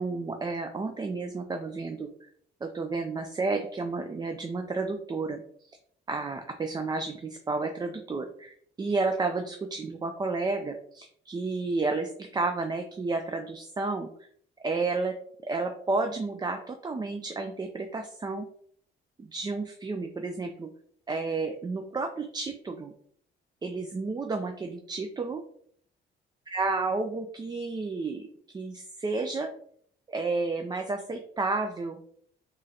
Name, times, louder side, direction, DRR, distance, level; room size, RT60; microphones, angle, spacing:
voice 1, 0.0-2.3 2.6-5.4 6.1-14.1 14.6-15.1 15.4-18.5 19.2-20.7 21.1-22.9 23.6-25.4 26.5-29.5 30.1-32.0, right 3 dB, 20° right, 5 dB, 0.4 m, -31 dB
3.7 x 3.1 x 2.8 m, 0.62 s
cardioid pair, 90°, 20 cm